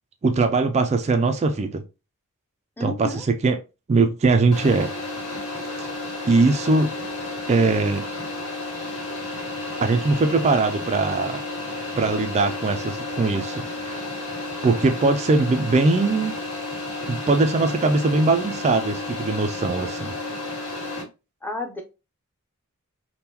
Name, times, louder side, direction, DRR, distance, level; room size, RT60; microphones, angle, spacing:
voice 1, 0.2-1.8 2.8-3.6 3.9-4.9 5.8-5.9 6.3-6.9 7.5-8.0 9.8-11.4 12.0-14.0 14.6-16.3 17.1-20.2, right 3 dB, 30° right, 0.3 m, -21 dB
voice 2, 2.8-3.3 21.4-21.8, left 2 dB, 10° left, 0.6 m, -31 dB
sound 1, 4.5-21.0, left 2 dB, 70° left, 1.7 m, -32 dB
3.6 x 2.2 x 2.8 m
head